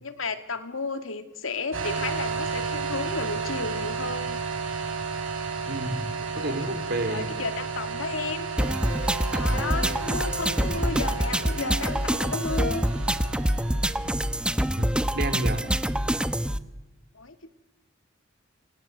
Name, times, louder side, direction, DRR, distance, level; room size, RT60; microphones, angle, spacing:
voice 1, 0.0-4.4 6.2-6.7 7.1-8.5 8.9-12.9 17.1-17.6, left 3 dB, 85° left, 9 dB, 2.3 m, -33 dB
sound 1, 1.7-14.3, right 5 dB, 85° right, 7.4 m, -33 dB
voice 2, 5.6-7.3 9.3-9.6 14.8-15.7, right 2 dB, 55° right, 9 dB, 3.3 m, -31 dB
sound 2, 8.6-16.6, equal, 5° right, 0.9 m, -26 dB
28.5 x 25.0 x 8.1 m, 1.1 s
head